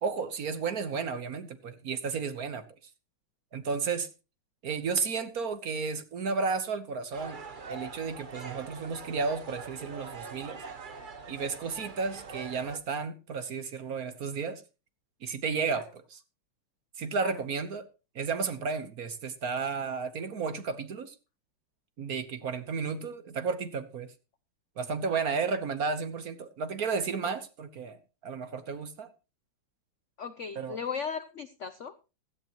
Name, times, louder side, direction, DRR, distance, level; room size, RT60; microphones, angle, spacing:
voice 1, 0.0-2.7 3.5-4.1 4.6-7.4 7.7-10.6 11.3-14.6 15.2-16.2 17.0-17.9 18.1-21.1 22.0-24.1 24.8-29.1 30.5-30.8, right 5 dB, 50° right, 1.3 m, -33 dB
sound 1, 7.1-12.8, right 4 dB, 35° right, 0.8 m, -43 dB
voice 2, 30.2-32.1, left 6 dB, 80° left, 0.6 m, -37 dB
16.5 x 13.5 x 3.0 m
omnidirectional pair, 2.3 m